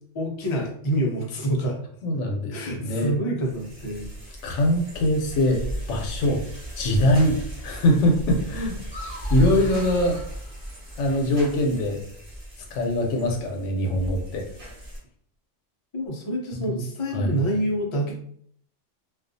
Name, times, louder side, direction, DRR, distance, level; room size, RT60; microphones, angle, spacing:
voice 1, 0.1-1.8 2.5-4.4 15.9-18.1, right 1 dB, 55° left, -1 dB, 0.3 m, -27 dB
voice 2, 2.0-3.1 4.4-6.4 6.7-7.4 7.6-8.8 9.3-10.2 11.0-12.0 12.7-14.4 16.5-16.8 17.1-17.4, left 1 dB, 75° left, 2 dB, 0.9 m, -23 dB
Bicycle falling down, 3.4-15.0, equal, 35° right, 0.7 m, -35 dB
sound 1, 8.8-11.3, left 1 dB, 5° right, 1.2 m, -43 dB
2.4 x 2.3 x 2.5 m, 0.63 s
omnidirectional pair, 1.3 m